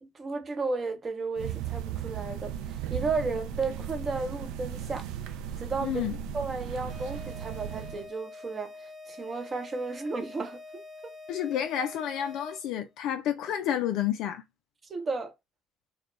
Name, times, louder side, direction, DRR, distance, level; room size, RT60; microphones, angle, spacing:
voice 1, 0.0-5.0 5.6-10.6 14.9-15.3, right 3 dB, 35° right, 0.8 m, -33 dB
sound 1, 1.4-8.1, right 9 dB, 75° right, 0.3 m, -36 dB
voice 2, 5.8-6.2 11.3-14.4, left 10 dB, 65° left, 0.3 m, -30 dB
sound 2, 6.9-12.8, left 3 dB, 5° right, 0.9 m, -46 dB
2.2 x 2.2 x 3.0 m
hypercardioid pair, 60°, 0 cm